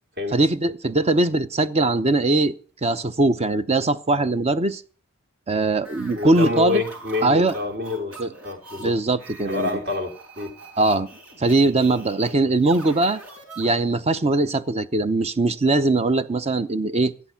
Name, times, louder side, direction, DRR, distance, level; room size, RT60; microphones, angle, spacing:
voice 1, 0.3-2.5 2.8-4.8 5.5-6.8 7.2-7.5 8.2-8.3 8.8-9.7 10.8-11.1 11.4-13.2 13.6-17.1, right 2 dB, 30° right, 0.7 m, -21 dB
sound 1, 5.8-14.1, right 3 dB, 85° right, 4.9 m, -43 dB
voice 2, 6.1-8.9 9.4-10.6, left 3 dB, 50° right, 2.9 m, -28 dB
14.0 x 10.5 x 5.8 m
head